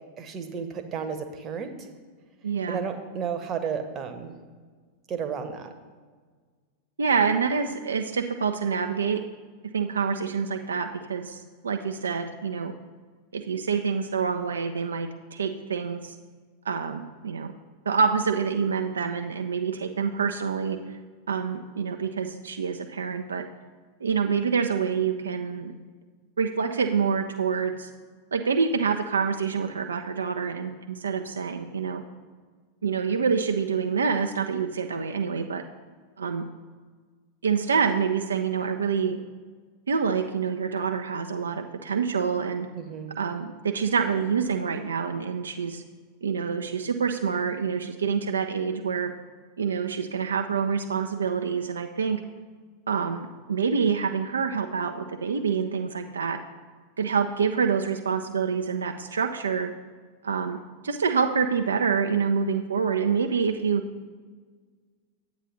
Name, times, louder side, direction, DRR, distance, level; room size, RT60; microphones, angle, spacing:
voice 1, 0.2-1.7 2.7-4.3 5.1-5.7 42.7-43.1, right 6 dB, 30° right, 7 dB, 0.9 m, -32 dB
voice 2, 2.4-2.8 7.0-9.2 9.7-12.7 13.3-16.1 16.7-17.5 17.9-20.8 21.3-23.4 24.0-25.7 26.4-27.9 28.3-32.0 32.8-35.6 36.2-36.4 37.4-39.2 39.9-42.7 43.2-45.8 46.2-49.1 49.6-52.2 52.9-56.4 57.0-59.7 60.2-60.6 60.8-63.8, right 6 dB, 70° right, 5 dB, 0.4 m, -26 dB
9.3 x 8.2 x 3.2 m, 1.5 s
figure-of-eight pair, 90°, 0 cm